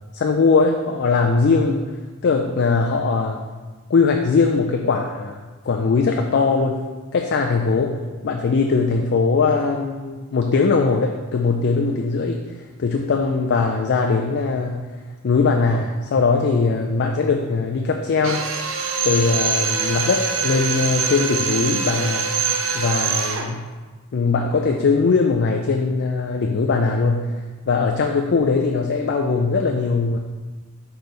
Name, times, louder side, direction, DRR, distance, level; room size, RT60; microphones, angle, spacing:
voice 1, 0.1-1.9 2.2-3.4 3.9-5.4 5.6-6.8 7.1-12.4 12.8-14.8 15.2-18.4 19.0-22.3 22.7-23.6 24.1-27.3 27.7-30.2, left 4 dB, 55° left, 2 dB, 0.4 m, -20 dB
Drill, 18.2-23.5, right 5 dB, 65° right, 0.6 m, -24 dB
5.9 x 3.3 x 5.3 m, 1.3 s
head